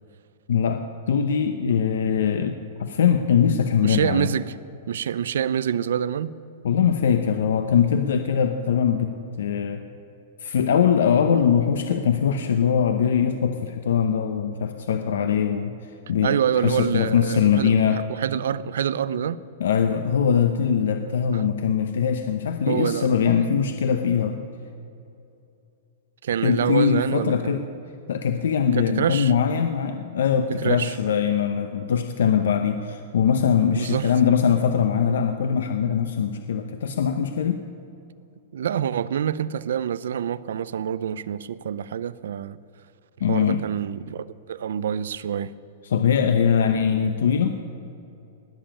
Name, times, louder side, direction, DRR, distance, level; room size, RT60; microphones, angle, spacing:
voice 1, 0.5-4.3 6.6-9.8 10.4-18.0 19.6-24.5 26.4-27.7 28.1-37.6 43.2-43.6 45.8-47.5, left 7 dB, 80° left, 7 dB, 0.9 m, -22 dB
voice 2, 3.8-4.6 4.9-6.4 16.2-19.4 21.3-21.5 22.7-23.4 26.2-27.6 28.8-29.3 30.6-31.0 33.8-34.1 38.5-42.6 43.3-45.5, right 8 dB, 75° right, 17 dB, 0.6 m, -26 dB
19.5 x 7.3 x 8.9 m, 2.7 s
supercardioid pair, 175°, 0 cm